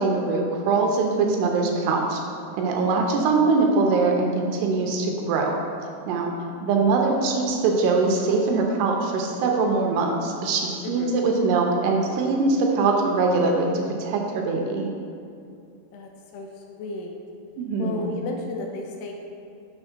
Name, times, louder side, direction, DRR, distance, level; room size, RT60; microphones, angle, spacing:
voice 1, 0.0-2.2 2.6-5.5 6.1-6.3 6.6-14.9 17.6-18.0, right 3 dB, 85° right, 1 dB, 2.7 m, -22 dB
voice 2, 10.8-11.2 15.9-17.2 17.8-19.1, left 2 dB, 80° left, 2 dB, 2.5 m, -34 dB
6.8 x 3.5 x 5.8 m, 2.5 s
omnidirectional pair, 4.8 m